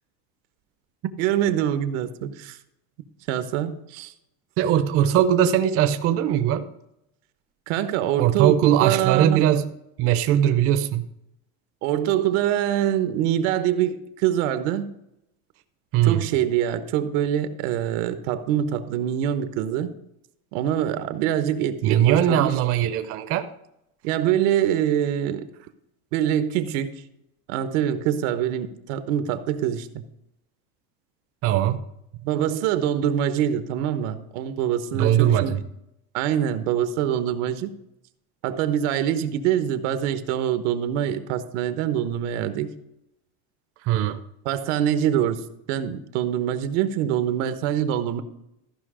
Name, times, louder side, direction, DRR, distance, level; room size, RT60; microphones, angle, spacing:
voice 1, 1.2-2.6 3.3-4.1 7.7-9.4 11.8-14.9 16.0-19.9 20.5-22.5 24.0-25.5 26.1-27.0 27.5-29.9 32.2-35.6 36.1-37.7 38.4-42.7 44.4-45.4 45.7-48.2, right 10 dB, 85° right, 10 dB, 1.1 m, -24 dB
voice 2, 4.6-6.7 8.2-9.7 10.0-11.1 15.9-16.3 21.8-23.5 31.4-31.8 34.9-35.6 43.8-44.2, right 10 dB, 40° right, 10 dB, 0.6 m, -20 dB
14.0 x 5.5 x 4.9 m, 0.83 s
cardioid pair, 175°, 36 cm